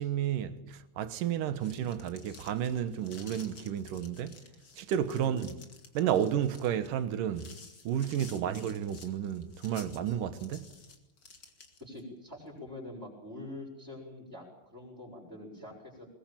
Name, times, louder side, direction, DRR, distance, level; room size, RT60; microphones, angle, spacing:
voice 1, 0.0-4.4 4.8-5.6 5.9-7.5 7.8-10.7, right 9 dB, 70° right, 2.8 m, -32 dB
sound 1, 1.5-12.0, left 4 dB, 35° left, 2.3 m, -53 dB
voice 2, 11.8-16.1, left 1 dB, 5° right, 6.7 m, -45 dB
21.5 x 20.5 x 8.9 m
omnidirectional pair, 4.1 m